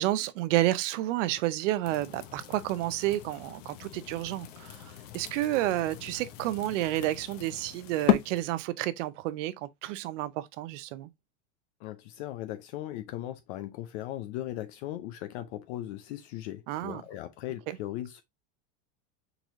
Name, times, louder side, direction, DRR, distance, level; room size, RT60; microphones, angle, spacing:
voice 1, 0.0-4.8 5.1-11.1 16.7-17.0 17.7-17.8, right 15 dB, 75° right, 0.7 m, -30 dB
sound 1, 1.8-8.4, left 12 dB, 85° left, 1.0 m, -35 dB
voice 2, 11.8-18.2, left 14 dB, 60° left, 0.7 m, -38 dB
4.7 x 3.9 x 2.5 m
supercardioid pair, 150°, 37 cm